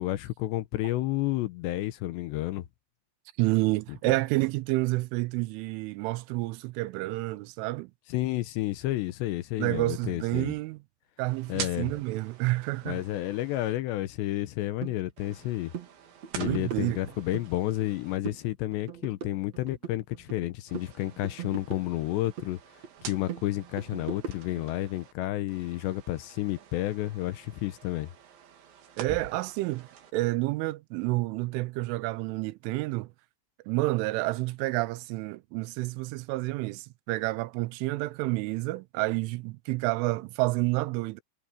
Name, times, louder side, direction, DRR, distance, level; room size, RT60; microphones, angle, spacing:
voice 1, 0.0-2.6 8.1-10.5 11.5-11.9 12.9-15.7 16.4-22.6 23.0-28.1, left 16 dB, 80° left, 2.8 m, -31 dB
voice 2, 3.4-7.9 9.6-10.8 11.2-13.0 16.4-17.0 29.0-33.1 33.7-41.2, right 20 dB, 85° right, 3.2 m, -29 dB
sound 1, 11.3-13.7 15.2-18.2 20.7-25.1 25.5-30.1, right 8 dB, 70° right, 4.9 m, -46 dB
Hand Percussion, 14.8-14.9 15.3-15.5 15.7-15.9 16.2-17.5 17.8-18.4 18.7-20.5 20.7-22.5 22.8-24.7, right 7 dB, 45° right, 2.6 m, -40 dB
omnidirectional pair, 5.5 m